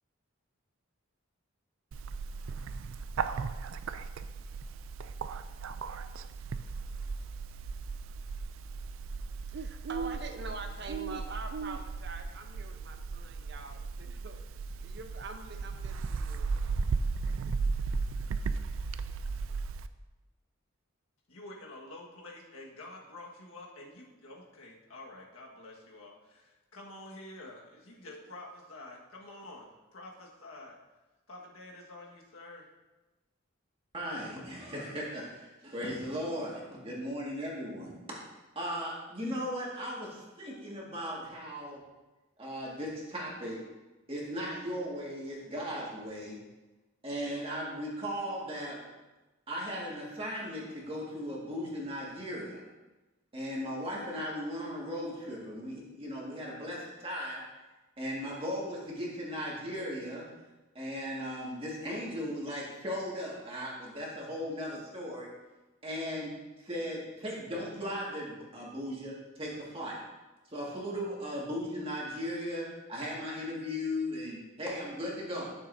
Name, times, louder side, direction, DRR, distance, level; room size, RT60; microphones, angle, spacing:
Bird, 1.9-19.9, right 4 dB, 75° right, 0.4 m, -36 dB
voice 1, 9.5-16.6, right 3 dB, 55° right, 6 dB, 0.8 m, -45 dB
voice 2, 21.3-30.8 31.3-32.7, left 2 dB, 90° left, -2 dB, 1.6 m, -48 dB
voice 3, 33.9-38.0 38.6-41.8 42.4-43.6 44.1-46.4 47.0-48.8 49.5-52.6 53.3-57.4 58.0-60.3 60.7-65.3 65.8-70.0 70.5-75.5, equal, 25° right, -4 dB, 1.9 m, -37 dB
12.5 x 6.8 x 2.7 m, 1.1 s
head